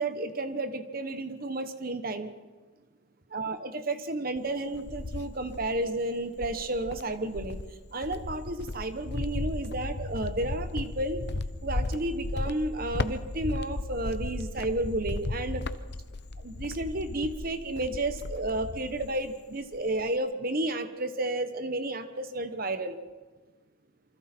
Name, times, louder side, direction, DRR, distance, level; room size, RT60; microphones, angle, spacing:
voice 1, 0.0-2.3 3.3-7.6 7.9-11.2 11.6-15.6 16.4-23.0, right 2 dB, 50° right, 9 dB, 1.1 m, -32 dB
Cricket, 4.4-5.9 6.4-19.3 19.6-20.2, left 2 dB, 55° left, 0.8 m, -35 dB
27.5 x 25.0 x 4.4 m, 1.3 s
head